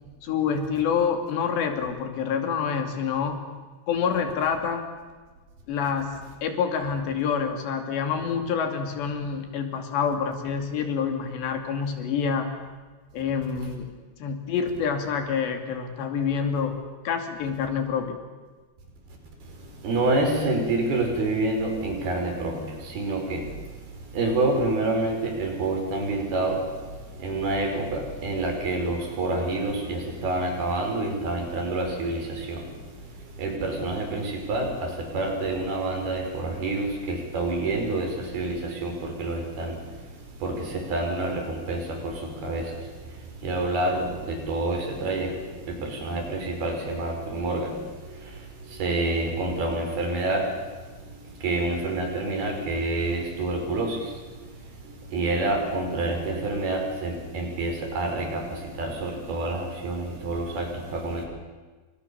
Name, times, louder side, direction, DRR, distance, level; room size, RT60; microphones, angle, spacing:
voice 1, 0.2-3.5 3.9-4.8 5.7-6.1 6.4-12.5 13.1-13.9 14.2-16.8 17.0-18.2, left 6 dB, 75° left, 5 dB, 4.9 m, -27 dB
voice 2, 19.8-22.6 22.8-23.5 24.1-26.6 27.2-32.6 33.4-39.8 40.4-42.7 43.4-45.3 45.7-47.7 48.8-50.5 51.4-54.0 55.1-61.2, right 2 dB, 60° right, 3 dB, 7.1 m, -27 dB
29.5 x 25.5 x 7.2 m, 1.3 s
omnidirectional pair, 5.1 m